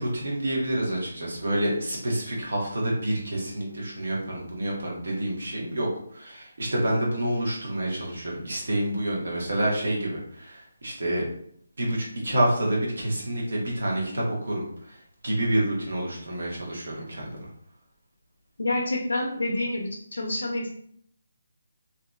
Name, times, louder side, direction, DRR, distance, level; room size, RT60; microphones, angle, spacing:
voice 1, 0.0-5.9 6.1-11.3 11.8-14.6 15.2-17.3, right 1 dB, 70° right, -3 dB, 1.0 m, -28 dB
voice 2, 18.6-20.7, left 1 dB, 85° left, 0 dB, 0.4 m, -28 dB
2.6 x 2.2 x 2.2 m, 0.66 s
hypercardioid pair, 165°, 0 cm